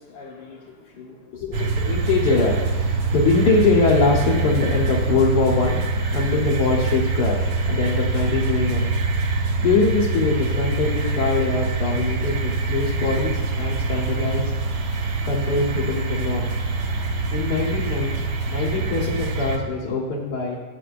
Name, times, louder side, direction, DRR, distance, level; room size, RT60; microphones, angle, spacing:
voice 1, 0.0-5.8 6.1-8.9 9.6-14.5 15.2-16.5 17.3-18.2 18.5-20.6, left 4 dB, 70° left, -4 dB, 1.7 m, -23 dB
sound 1, 1.5-19.6, right 3 dB, 85° right, 1.5 m, -24 dB
11.5 x 9.7 x 2.5 m, 1.3 s
omnidirectional pair, 1.8 m